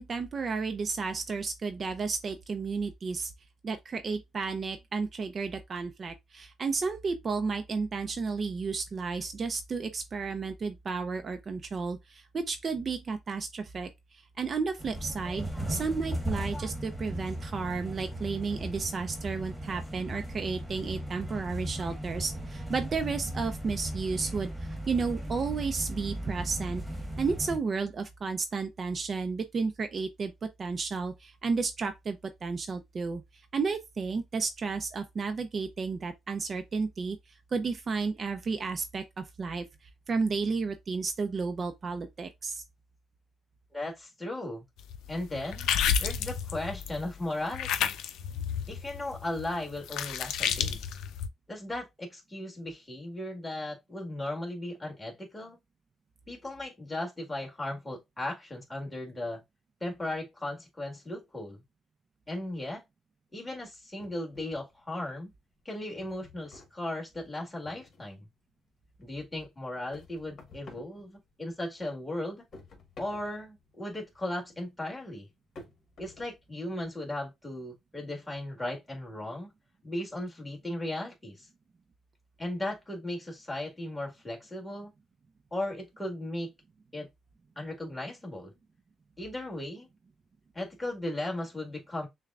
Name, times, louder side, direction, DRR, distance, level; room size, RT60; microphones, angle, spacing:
voice 1, 0.0-3.3 3.6-13.9 14.4-26.8 27.2-30.3 30.6-33.2 33.5-37.2 37.5-39.7 40.1-42.6, right 4 dB, 45° right, 0.5 m, -32 dB
sound 1, 14.8-27.6, right 1 dB, 10° right, 1.4 m, -37 dB
voice 2, 43.7-44.7 45.1-45.7 46.0-48.0 48.7-50.8 51.5-55.6 56.3-59.4 59.8-61.6 62.3-62.8 63.3-65.3 65.7-68.3 69.0-72.4 73.0-75.3 76.0-79.5 79.8-81.5 82.4-84.9 85.5-86.5 86.9-87.1 87.6-88.5 89.2-89.9 90.5-92.1, left 1 dB, 15° left, 1.8 m, -36 dB
sound 2, 44.9-47.1 47.5-51.3, left 8 dB, 85° left, 0.4 m, -31 dB
sound 3, 64.0-65.0 65.4-68.3 68.7-71.7 72.0-76.9, left 2 dB, 55° left, 1.4 m, -53 dB
6.6 x 2.2 x 2.4 m
cardioid pair, 90°, 0 cm